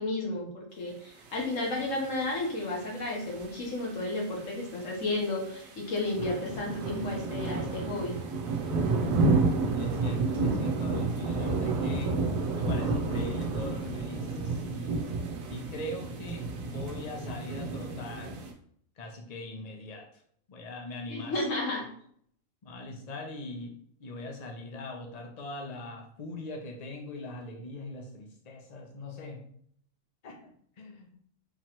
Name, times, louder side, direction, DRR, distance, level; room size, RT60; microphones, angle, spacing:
voice 1, 0.0-8.2 21.1-21.8, left 2 dB, 70° left, -1 dB, 1.4 m, -32 dB
sound 1, 1.3-18.5, right 3 dB, 90° right, 1.1 m, -31 dB
voice 2, 9.7-12.3 12.5-15.1 15.5-18.4 19.0-20.2 20.5-21.5 22.6-29.5 30.2-31.1, left 2 dB, 40° left, 2 dB, 0.6 m, -41 dB
3.9 x 3.0 x 2.9 m, 0.63 s
omnidirectional pair, 1.4 m